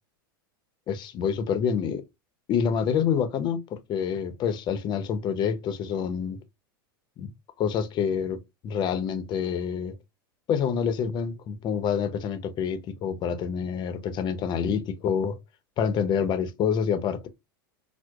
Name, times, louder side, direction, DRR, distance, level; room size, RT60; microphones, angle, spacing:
voice 1, 0.9-2.0 2.5-6.4 7.2-7.3 7.6-9.9 10.5-15.4 15.8-17.3, left 7 dB, 40° left, 0.7 m, -27 dB
4.4 x 2.1 x 2.4 m
hypercardioid pair, 100°, 12 cm